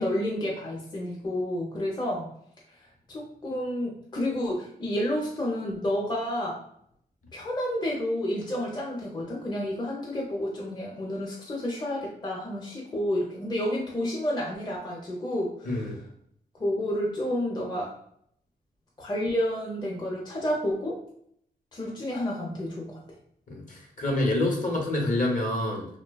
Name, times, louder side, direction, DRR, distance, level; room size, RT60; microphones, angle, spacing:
voice 1, 0.0-2.3 3.1-6.6 7.3-15.8 16.6-17.9 19.0-21.0 21.7-23.0, left 1 dB, 25° left, -3 dB, 0.6 m, -30 dB
voice 2, 15.6-16.0 23.5-25.9, left 1 dB, 50° left, 0 dB, 0.8 m, -27 dB
2.6 x 2.2 x 2.2 m, 0.69 s
cardioid pair, 70°, 17 cm